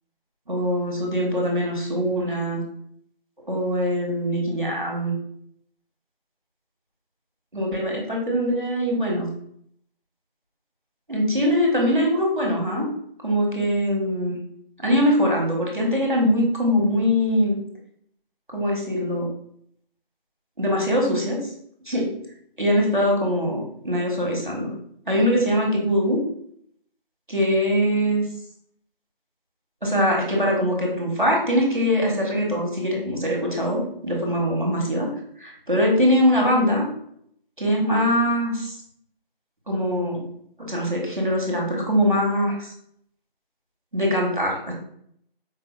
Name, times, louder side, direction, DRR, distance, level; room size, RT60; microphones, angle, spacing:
voice 1, 0.5-2.6 3.5-5.1 7.5-9.3 11.1-12.9 13.2-14.4 14.8-17.6 18.5-19.3 20.6-21.4 21.9-22.1 22.6-24.7 25.1-26.2 27.3-28.2 29.8-35.1 35.4-36.9 37.6-38.8 39.7-40.2 40.6-42.7 43.9-44.7, equal, 55° right, -1 dB, 1.3 m, -22 dB
4.6 x 2.7 x 2.6 m, 0.67 s
figure-of-eight pair, 180°, 30 cm